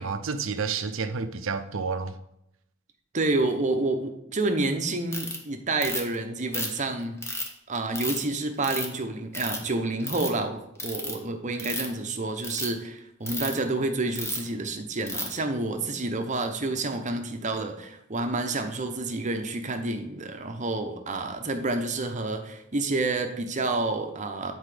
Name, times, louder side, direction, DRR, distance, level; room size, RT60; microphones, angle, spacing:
voice 1, 0.0-2.2, right 5 dB, 75° right, 0.6 m, -30 dB
voice 2, 3.1-7.4 7.7-24.5, right 2 dB, 35° right, 0.8 m, -29 dB
Ratchet pawl, 5.1-5.4 5.8-6.2 6.5-7.5 7.9-8.2 8.6-9.0 9.3-9.7 10.0-10.3 10.8-11.1 11.6-12.0 12.4-12.7 13.3-13.5 14.2-14.5 15.1-15.3, left 2 dB, 15° left, 1.0 m, -32 dB
8.0 x 4.4 x 4.9 m
head